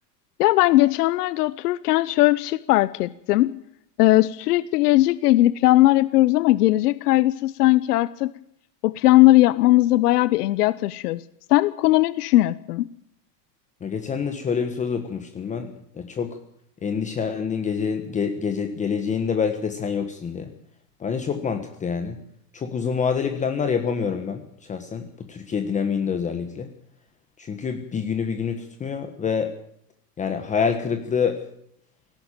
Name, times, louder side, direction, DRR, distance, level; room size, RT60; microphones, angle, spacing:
voice 1, 0.4-3.5 4.0-8.3 8.8-11.2 11.5-12.9, left 17 dB, 70° left, 17 dB, 0.9 m, -18 dB
voice 2, 13.8-16.4 16.8-20.5 21.0-22.2 22.5-26.7 27.4-29.5 30.2-31.4, left 6 dB, 15° left, 7 dB, 1.4 m, -26 dB
18.5 x 17.5 x 9.1 m, 0.71 s
supercardioid pair, 150°, 49 cm